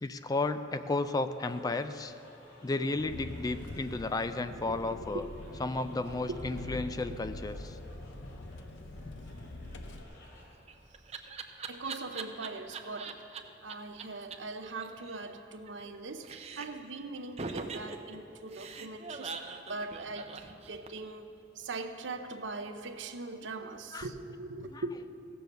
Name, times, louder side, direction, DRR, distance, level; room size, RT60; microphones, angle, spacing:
voice 1, 0.0-2.1 2.6-5.2 5.6-7.8 23.9-24.1 24.7-24.8, left 2 dB, 20° left, 11 dB, 0.3 m, -33 dB
sound 1, 1.3-10.5, left 1 dB, 65° left, 2.8 m, -56 dB
Engine, 2.9-10.0, left 2 dB, 80° left, 0.7 m, -44 dB
voice 2, 4.4-5.2 6.3-6.4 7.1-7.2 11.1-11.4 11.7-13.2 13.6-25.3, right 3 dB, 75° right, 8 dB, 0.7 m, -41 dB
Laughter, 10.3-13.4 13.7-13.8 14.0-14.1 14.3-14.4 14.6-16.0 16.2-16.9 17.4-21.1, right 5 dB, 35° right, 0.6 m, -42 dB
16.0 x 7.0 x 6.6 m, 2.8 s
head